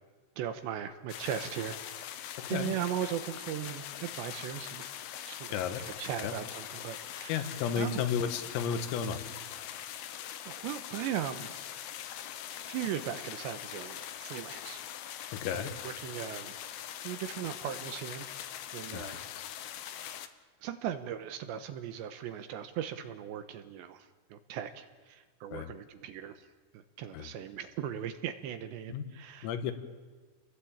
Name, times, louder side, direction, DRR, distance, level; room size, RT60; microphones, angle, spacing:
voice 1, 0.4-2.1 2.5-5.0 5.3-5.6 6.0-8.0 10.5-11.7 12.7-14.8 15.5-16.5 17.0-18.3 18.7-19.2 20.6-26.5 26.7-29.5, right 10 dB, 75° right, 10 dB, 2.9 m, -38 dB
sound 1, 1.1-20.3, left 11 dB, 70° left, 2.4 m, -42 dB
voice 2, 2.4-2.7 5.5-5.8 6.2-6.4 7.3-9.2 15.4-15.7 18.9-19.4 25.5-25.7 27.1-27.3 28.9-29.0 29.4-29.7, left 7 dB, 90° left, 9 dB, 4.3 m, -33 dB
29.5 x 20.5 x 8.8 m, 1.4 s
omnidirectional pair, 5.8 m